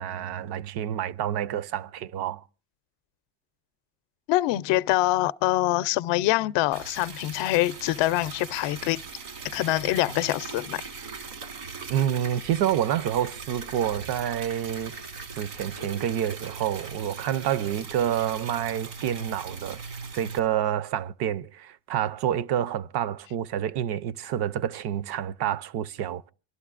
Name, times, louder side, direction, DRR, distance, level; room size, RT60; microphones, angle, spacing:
voice 1, 0.0-2.4 11.9-14.9 15.3-19.8 20.1-26.3, right 10 dB, 55° right, 0.6 m, -28 dB
voice 2, 4.3-9.0 9.4-10.9, left 16 dB, 70° left, 0.5 m, -25 dB
Liquid, 6.7-20.4, right 4 dB, 80° right, 2.8 m, -40 dB
27.0 x 11.5 x 2.4 m
cardioid pair, 110°, 46 cm